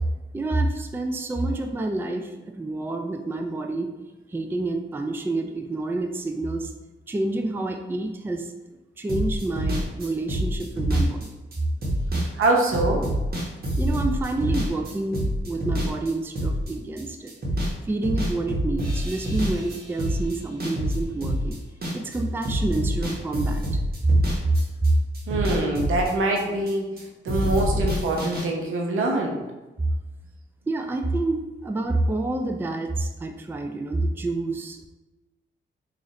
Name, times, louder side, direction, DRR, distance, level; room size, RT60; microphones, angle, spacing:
voice 1, 0.3-3.9 4.3-6.7 7.1-8.5 9.0-11.3 13.8-17.3 17.9-21.6 21.9-24.2 24.4-24.6 24.8-25.0 30.7-34.9, right 2 dB, 10° right, 5 dB, 0.3 m, -27 dB
sound 1, 9.1-17.0 17.3-17.8 18.0-22.2 22.4-24.9 25.1-27.0 27.3-28.4, equal, 45° right, 1.1 m, -27 dB
voice 2, 12.3-13.1 25.3-29.4, right 2 dB, 85° right, 0 dB, 0.7 m, -24 dB
3.7 x 2.5 x 3.2 m, 1.1 s
cardioid pair, 80°, 21 cm